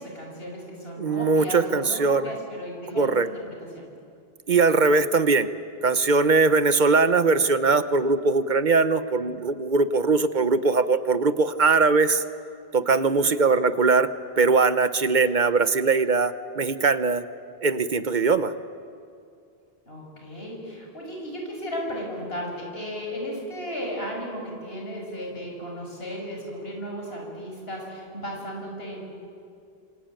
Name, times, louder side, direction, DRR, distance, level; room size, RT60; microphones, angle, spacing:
voice 1, 0.0-3.9 19.9-29.0, equal, 75° left, 0 dB, 6.5 m, -35 dB
voice 2, 1.0-2.3 3.0-3.3 4.5-5.5 5.8-12.2 12.7-14.1 14.4-17.2 17.6-18.5, right 4 dB, 50° right, 12 dB, 1.1 m, -21 dB
26.5 x 24.5 x 9.1 m, 2.4 s
omnidirectional pair, 1.0 m